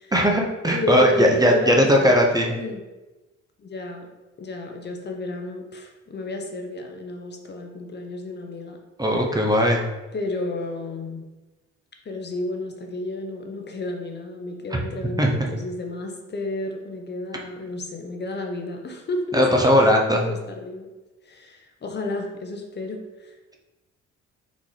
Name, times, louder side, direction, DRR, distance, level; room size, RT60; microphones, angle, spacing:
voice 1, 0.1-2.5 9.0-9.8 15.2-15.3 19.3-20.3, equal, 15° right, 0 dB, 0.7 m, -18 dB
voice 2, 0.7-2.2 2.5-2.8 3.6-4.1 4.4-8.8 9.2-9.4 10.1-11.3 12.0-20.9 21.2-23.6, left 2 dB, 35° left, 2 dB, 0.8 m, -31 dB
4.0 x 3.5 x 3.2 m, 1.1 s
cardioid pair, 90°, 30 cm